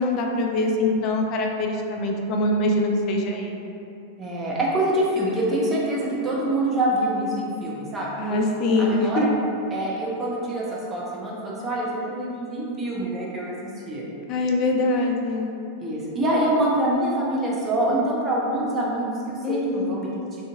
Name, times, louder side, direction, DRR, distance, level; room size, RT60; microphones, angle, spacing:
voice 1, 0.0-3.6 8.2-9.2 14.3-15.5 19.4-19.9, left 2 dB, 40° left, 1 dB, 0.3 m, -23 dB
voice 2, 4.2-8.4 8.8-9.3 9.7-14.0 15.8-20.1, right 1 dB, 20° right, -5 dB, 0.6 m, -25 dB
2.5 x 2.4 x 2.5 m, 2.6 s
figure-of-eight pair, 90°, 0 cm